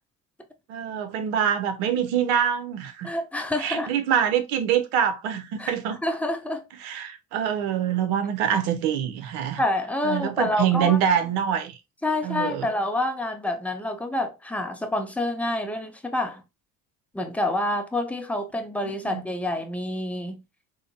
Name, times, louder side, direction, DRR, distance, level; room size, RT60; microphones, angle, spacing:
voice 1, 0.7-3.1 3.6-6.0 6.8-9.6 10.0-11.8 12.2-12.7 18.8-19.2, right 9 dB, 60° right, 0.7 m, -25 dB
voice 2, 3.0-3.9 5.6-5.8 6.0-6.6 9.6-11.0 12.0-16.4 17.1-20.4, left 1 dB, 5° left, 0.5 m, -27 dB
3.6 x 2.1 x 2.6 m
figure-of-eight pair, 55°, 43 cm